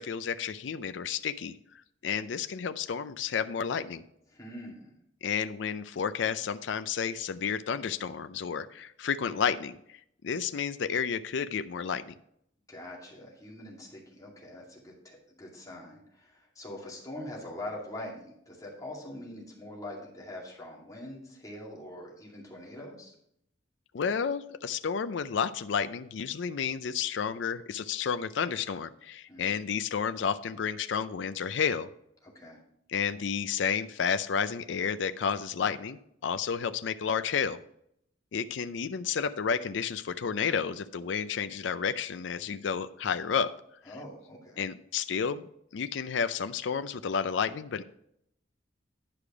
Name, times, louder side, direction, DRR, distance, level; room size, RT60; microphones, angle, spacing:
voice 1, 0.0-1.6 2.0-4.0 5.2-10.0 10.2-12.1 23.9-31.9 32.9-37.6 38.3-43.5 44.6-47.8, left 6 dB, 75° left, 12 dB, 0.4 m, -31 dB
voice 2, 4.3-5.0 12.7-23.1 29.3-29.5 32.2-32.6 43.9-44.7, left 1 dB, 20° left, -3 dB, 2.3 m, -43 dB
10.5 x 5.0 x 4.9 m, 0.72 s
head